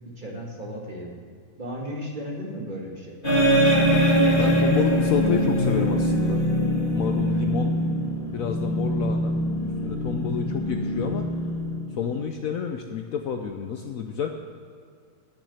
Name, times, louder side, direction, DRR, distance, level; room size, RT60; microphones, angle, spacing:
voice 1, 0.1-1.2 1.6-3.2, equal, 30° right, -1 dB, 1.6 m, -35 dB
sound 1, 3.2-12.1, equal, 30° left, 2.3 m, -23 dB
voice 2, 4.4-6.4 6.9-7.8 8.3-9.4 9.6-11.3 11.9-14.3, left 7 dB, 65° left, 5 dB, 0.9 m, -29 dB
9.6 x 7.3 x 8.1 m, 2.2 s
omnidirectional pair, 1.8 m